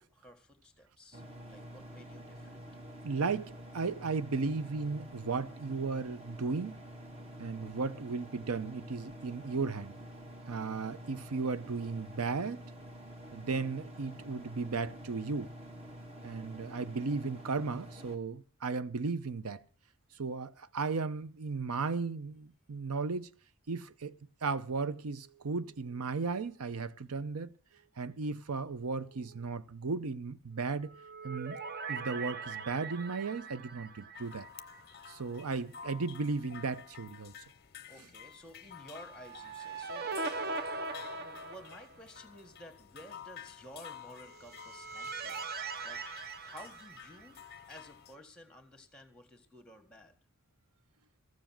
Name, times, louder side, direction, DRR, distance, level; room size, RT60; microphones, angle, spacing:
voice 1, 0.0-2.6 37.9-40.3 40.9-45.5 45.8-47.4 47.7-50.1, equal, 5° left, 1.6 m, -53 dB
sound 1, 1.1-18.2, equal, 25° right, 1.3 m, -48 dB
voice 2, 3.0-6.8 7.4-10.0 10.5-12.6 13.3-15.5 16.2-19.6 20.2-23.3 23.7-24.1 24.4-27.5 28.0-30.9 31.2-31.6 31.9-34.5 35.1-37.3, right 4 dB, 85° right, 0.7 m, -35 dB
sound 2, 30.8-35.1 35.4-35.5 39.0-42.2 44.2-47.6, right 4 dB, 45° right, 0.7 m, -41 dB
sound 3, 34.1-48.2, left 8 dB, 45° left, 0.6 m, -51 dB
14.5 x 7.2 x 7.5 m
head